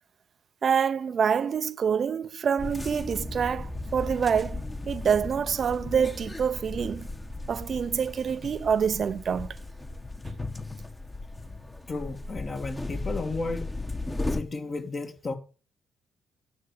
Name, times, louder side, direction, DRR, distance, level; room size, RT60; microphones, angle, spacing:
voice 1, 0.6-7.1 7.5-9.6, right 7 dB, 55° right, 0.6 m, -26 dB
sound 1, 2.6-14.4, left 2 dB, 20° left, 1.4 m, -36 dB
voice 2, 11.9-13.7 14.3-15.3, left 3 dB, 45° left, 2.3 m, -33 dB
9.7 x 7.2 x 6.5 m
supercardioid pair, 55°, 0 cm